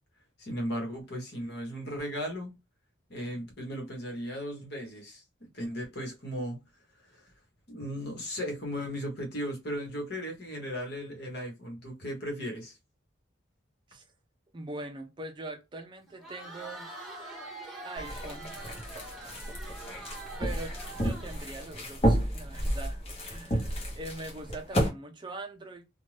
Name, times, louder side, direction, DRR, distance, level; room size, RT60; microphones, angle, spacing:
voice 1, 0.4-2.5 3.1-6.6 7.1-7.3 7.7-12.8, equal, 55° left, 1.2 m, -36 dB
voice 2, 14.5-16.9 17.8-18.5 20.4-23.0 23.3-25.9, right 2 dB, 25° right, 0.4 m, -42 dB
Crowd, 16.1-22.1, right 2 dB, ahead, 0.9 m, -44 dB
sound 1, 18.0-24.9, equal, 30° left, 0.9 m, -31 dB
2.6 x 2.2 x 3.1 m
head